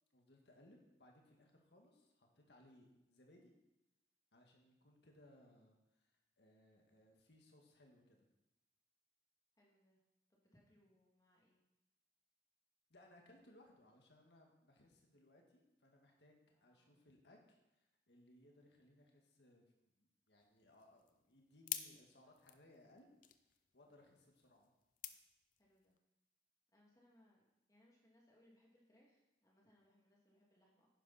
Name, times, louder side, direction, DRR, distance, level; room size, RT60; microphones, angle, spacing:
voice 1, 0.1-3.5 4.3-8.3 12.9-19.6 20.0-23.1 23.7-24.7, left 1 dB, 75° left, 1 dB, 1.9 m, -66 dB
voice 2, 9.6-10.0 10.3-11.6 16.5-17.0 23.9-24.1 25.6-25.9 26.7-30.9, left 1 dB, 20° left, -3 dB, 2.4 m, -72 dB
sound 1, 20.4-26.0, left 11 dB, 50° left, 0.6 m, -52 dB
10.0 x 10.0 x 4.3 m, 0.93 s
head